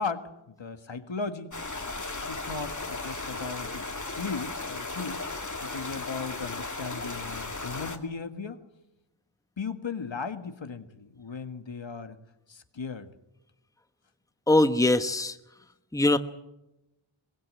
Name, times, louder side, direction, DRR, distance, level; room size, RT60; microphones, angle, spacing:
voice 1, 0.0-1.6 2.2-3.9 4.2-5.2 5.6-8.6 9.6-12.2 12.5-13.1, left 4 dB, 65° left, 9 dB, 1.7 m, -36 dB
sound 1, 1.5-8.0, left 3 dB, 35° left, 2.3 m, -36 dB
voice 2, 14.5-15.4 15.9-16.2, left 2 dB, 5° left, 9 dB, 1.1 m, -22 dB
22.5 x 20.0 x 7.7 m, 0.91 s
wide cardioid pair, 75°, 48 cm